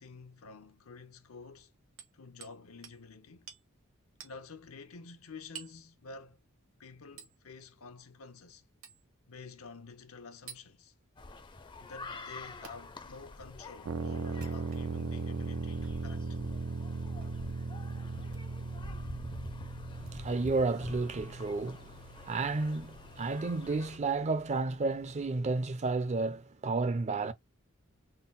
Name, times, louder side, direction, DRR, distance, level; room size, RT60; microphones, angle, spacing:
voice 1, 0.0-1.7 2.1-3.5 4.2-6.4 6.8-8.6 9.3-10.9 11.8-16.4, left 4 dB, 85° left, 0.8 m, -50 dB
Hammer, 2.0-2.6 2.8-3.0 3.5-3.6 4.2-4.4 5.5-5.8 7.2-7.4 8.8-9.0 10.5-10.6 12.6-12.7 14.2-15.0 15.8-15.9 17.2-17.4 18.3-18.5 20.0-20.1, right 7 dB, 70° right, 1.1 m, -49 dB
sound 1, 11.2-24.0, left 2 dB, 20° left, 0.5 m, -47 dB
sound 2, 13.8-25.5, right 3 dB, 90° right, 0.5 m, -39 dB
voice 2, 20.0-27.3, right 3 dB, 35° right, 0.4 m, -32 dB
3.8 x 2.0 x 3.8 m
head